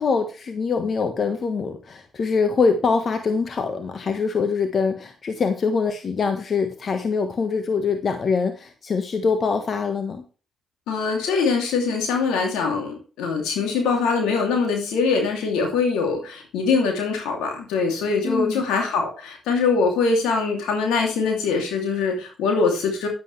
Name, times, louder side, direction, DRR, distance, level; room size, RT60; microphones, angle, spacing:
voice 1, 0.0-10.2 18.2-18.7, left 5 dB, 55° left, 7 dB, 1.4 m, -24 dB
voice 2, 10.9-23.1, left 4 dB, 85° left, 2 dB, 2.8 m, -23 dB
10.5 x 9.5 x 3.3 m, 0.35 s
supercardioid pair, 50°, 0 cm